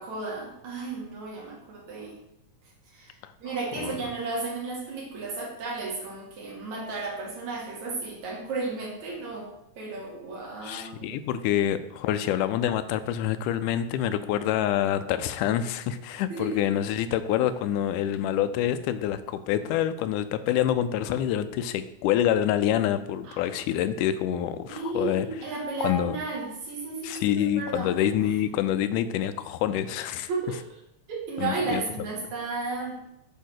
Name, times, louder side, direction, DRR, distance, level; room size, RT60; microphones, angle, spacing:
voice 1, 0.0-2.2 2.9-9.5 9.8-11.2 16.3-16.6 21.0-21.1 23.2-23.4 24.7-28.2 30.3-30.8 31.1-33.0, right 3 dB, 65° right, -2 dB, 3.2 m, -34 dB
voice 2, 3.2-4.0 10.6-25.3 25.8-26.2 27.0-30.3 31.4-31.8, left 11 dB, 85° left, 12 dB, 2.1 m, -27 dB
7.9 x 3.7 x 6.4 m, 0.79 s
omnidirectional pair, 3.6 m